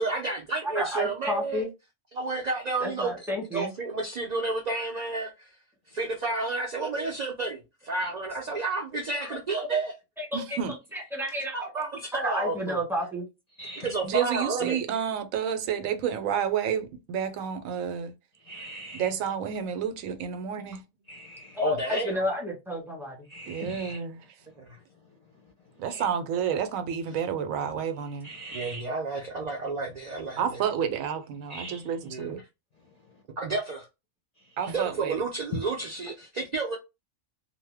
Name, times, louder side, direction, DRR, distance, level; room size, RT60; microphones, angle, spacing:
voice 1, 0.0-1.6 2.1-3.2 3.5-5.5 5.9-9.9 11.5-12.8 13.8-14.8 21.6-22.2 24.6-24.8 28.5-30.6 32.0-32.3 33.4-33.8 34.7-36.8, right 3 dB, 55° right, 0.4 m, -31 dB
voice 2, 0.7-1.7 2.8-3.7 10.2-11.6 12.1-13.3 14.6-14.8 21.5-23.2, left 1 dB, ahead, 1.0 m, -31 dB
voice 3, 10.3-10.7 14.0-18.1 18.9-20.8 23.5-24.2 25.8-28.3 30.4-32.4 34.6-35.1, right 8 dB, 85° right, 1.0 m, -30 dB
voice 4, 13.6-13.9 18.4-19.1 21.1-21.6 23.3-24.0 25.8-26.1 28.2-28.8 31.5-31.9 34.5-34.7 35.5-35.6, left 1 dB, 40° left, 0.6 m, -40 dB
2.7 x 2.1 x 3.3 m
omnidirectional pair, 1.4 m